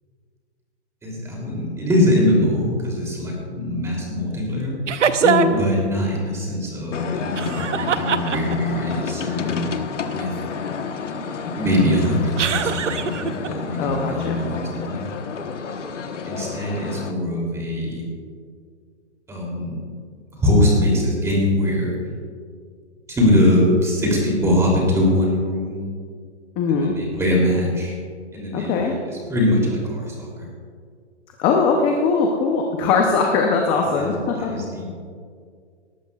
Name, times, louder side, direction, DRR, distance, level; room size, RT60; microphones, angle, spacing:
voice 1, 1.0-4.8 5.5-9.7 10.1-10.3 11.2-15.1 16.2-18.0 19.3-19.8 20.3-21.9 23.1-25.8 26.7-28.0 28.3-30.5 33.7-34.1 34.4-34.9, left 1 dB, 10° right, -3 dB, 3.0 m, -22 dB
sound 1, 4.9-5.7 7.4-8.8 12.4-13.5, right 7 dB, 85° right, 0.9 m, -22 dB
voice 2, 5.2-5.6 13.8-14.4 26.6-27.0 28.5-28.9 31.4-34.5, left 4 dB, 15° left, 1 dB, 0.6 m, -20 dB
sound 2, 6.9-17.1, left 5 dB, 85° left, 1.3 m, -30 dB
19.0 x 14.0 x 2.4 m, 2.1 s
hypercardioid pair, 150°, 35 cm